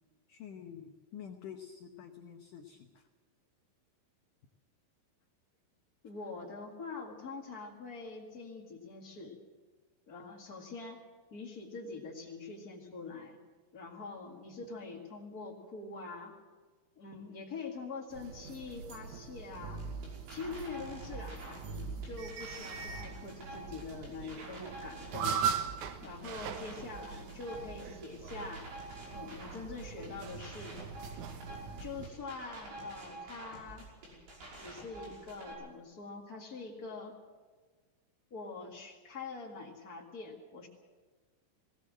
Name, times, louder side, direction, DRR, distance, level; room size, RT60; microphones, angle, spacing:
voice 1, 0.3-3.0, left 8 dB, 85° left, 4 dB, 1.8 m, -48 dB
voice 2, 6.0-9.4 10.1-11.0 11.3-13.4 13.7-16.3 17.0-19.8 20.3-25.4 26.0-28.6 29.1-30.8 31.8-33.8 34.6-37.2 38.3-40.7, left 4 dB, 65° left, -1 dB, 0.9 m, -44 dB
sound 1, 18.1-32.1, right 6 dB, 80° right, 1.7 m, -41 dB
sound 2, 19.5-35.5, right 2 dB, 60° right, 7.4 m, -47 dB
19.0 x 18.5 x 7.5 m, 1.4 s
omnidirectional pair, 5.4 m